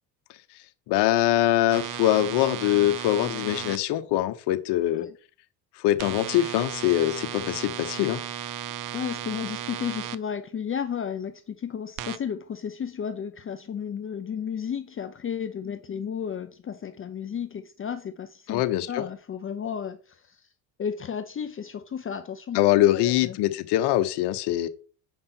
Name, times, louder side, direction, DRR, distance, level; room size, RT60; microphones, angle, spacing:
voice 1, 0.9-5.0 5.8-8.2 18.5-19.0 22.5-24.7, left 14 dB, 65° left, 1.1 m, -23 dB
sound 1, 1.7-3.8 6.0-10.1 12.0-12.2, right 11 dB, 45° right, 0.7 m, -35 dB
voice 2, 8.9-18.6 18.9-20.5 20.8-22.6 22.9-23.4, left 7 dB, 30° left, 0.7 m, -33 dB
7.9 x 5.3 x 4.4 m
supercardioid pair, 95°, 43 cm